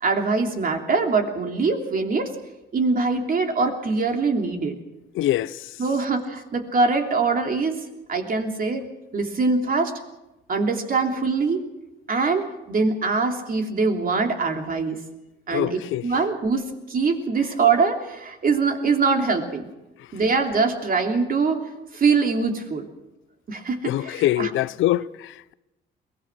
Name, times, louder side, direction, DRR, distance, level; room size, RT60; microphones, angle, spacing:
voice 1, 0.0-2.3 2.7-4.7 5.8-7.8 8.1-10.0 10.5-11.7 12.1-15.0 15.5-19.7 20.1-21.6 21.9-22.9 23.5-24.5, right 4 dB, 45° right, 3.0 m, -23 dB
voice 2, 5.1-5.7 15.5-16.1 23.8-25.5, left 14 dB, 80° left, 0.7 m, -24 dB
22.5 x 18.5 x 6.2 m
cardioid pair, 90°, 20 cm